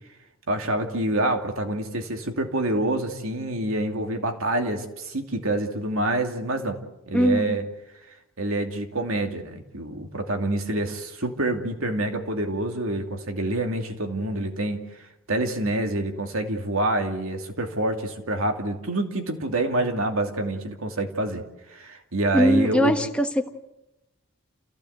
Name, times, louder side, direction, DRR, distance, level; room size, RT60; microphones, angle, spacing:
voice 1, 0.5-6.8 7.1-7.6 8.4-14.8 15.3-23.0, right 1 dB, 75° right, 4 dB, 2.7 m, -27 dB
voice 2, 7.1-7.6 22.3-23.3, equal, 5° left, 4 dB, 1.2 m, -20 dB
28.0 x 16.0 x 8.1 m, 0.98 s
head